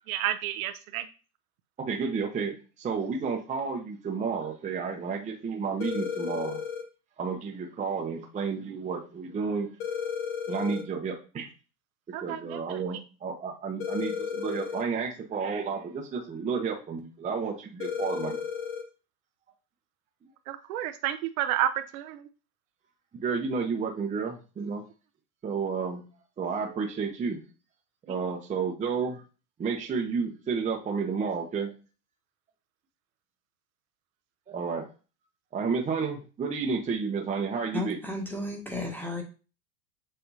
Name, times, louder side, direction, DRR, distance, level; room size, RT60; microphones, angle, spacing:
voice 1, 0.1-1.1 12.1-12.8 20.5-22.3 28.1-28.2, right 12 dB, 60° right, 9 dB, 0.6 m, -31 dB
voice 2, 1.8-6.6 7.2-9.7 10.5-11.5 12.2-18.4 23.2-24.8 25.4-26.0 26.4-27.4 28.1-29.2 29.6-31.7 34.5-34.9 35.5-38.0, right 5 dB, 15° right, 1 dB, 0.7 m, -31 dB
sound 1, 5.8-6.8 9.8-10.8 13.8-14.8 17.8-18.8, left 7 dB, 65° left, 1.3 m, -33 dB
voice 3, 37.7-39.2, left 2 dB, 5° left, 1 dB, 1.2 m, -33 dB
6.8 x 2.7 x 2.7 m, 0.34 s
hypercardioid pair, 110°, 47 cm